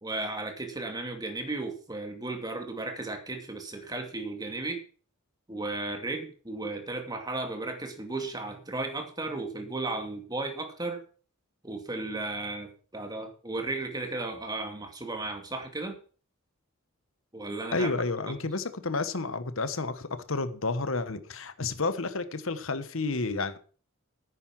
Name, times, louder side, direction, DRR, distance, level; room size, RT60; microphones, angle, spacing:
voice 1, 0.0-4.8 5.5-11.0 11.6-16.0 17.3-17.9 18.3-18.4, right 2 dB, 20° right, 2.4 m, -35 dB
voice 2, 17.7-23.6, left 3 dB, 65° left, 1.2 m, -31 dB
9.9 x 9.6 x 6.0 m
head